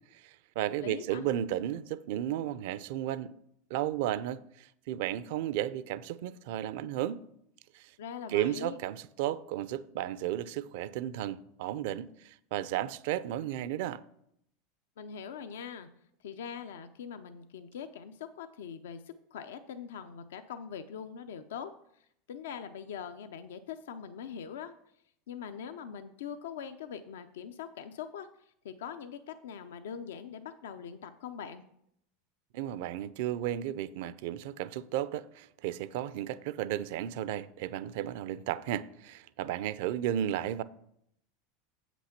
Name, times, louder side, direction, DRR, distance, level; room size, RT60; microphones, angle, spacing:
voice 1, 0.1-3.3 3.7-7.2 7.7-7.9 8.3-14.0 32.5-40.6, right 12 dB, 65° right, 0.5 m, -34 dB
voice 2, 0.8-1.2 8.0-8.8 15.0-15.9 16.2-19.0 19.3-21.7 22.3-24.7 25.3-28.3 28.6-31.6, left 7 dB, 90° left, 0.5 m, -42 dB
7.9 x 6.1 x 5.8 m
supercardioid pair, 130°, 0 cm